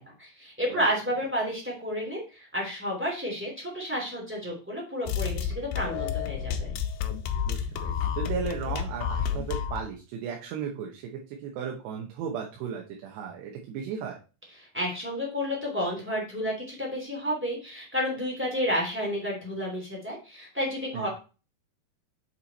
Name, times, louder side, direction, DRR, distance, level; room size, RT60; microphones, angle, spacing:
voice 1, 0.2-6.7 14.6-21.1, equal, 5° right, -2 dB, 2.2 m, -31 dB
sound 1, 5.1-9.9, left 8 dB, 80° left, 2.7 m, -30 dB
voice 2, 7.5-11.0 11.3-14.2 20.9-21.1, right 7 dB, 90° right, 1 dB, 3.2 m, -35 dB
7.5 x 5.6 x 4.1 m, 0.33 s
omnidirectional pair, 4.7 m